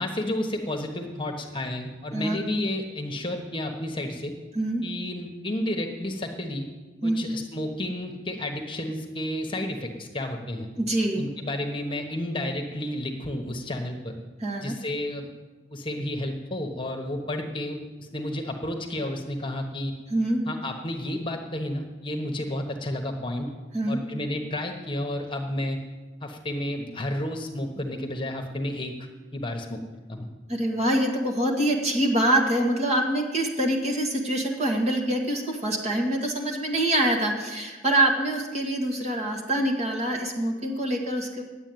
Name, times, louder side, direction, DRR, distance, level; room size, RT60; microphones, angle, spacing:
voice 1, 0.0-4.3 4.8-6.7 7.0-10.7 11.1-14.2 14.6-15.3 15.7-19.9 20.5-23.5 23.9-25.8 26.2-28.9 29.3-29.8 30.1-30.2, left 1 dB, 30° left, 3 dB, 1.1 m, -31 dB
voice 2, 10.8-11.2 14.4-14.8 20.1-20.4 23.7-24.0 30.5-41.4, right 1 dB, 35° right, 0 dB, 2.0 m, -25 dB
9.9 x 8.2 x 9.2 m, 1.3 s
head